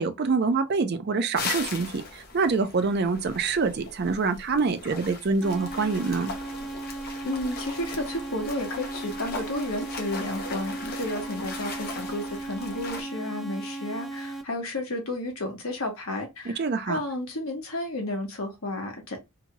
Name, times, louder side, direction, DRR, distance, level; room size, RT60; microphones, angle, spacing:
voice 1, 0.0-6.3 16.5-17.0, right 4 dB, 45° right, 0.4 m, -26 dB
sound 1, 1.3-13.0, left 3 dB, 40° left, 0.7 m, -38 dB
sound 2, 5.4-14.4, right 2 dB, ahead, 0.6 m, -36 dB
voice 2, 7.2-19.2, left 1 dB, 70° left, 1.1 m, -32 dB
2.8 x 2.3 x 2.9 m
head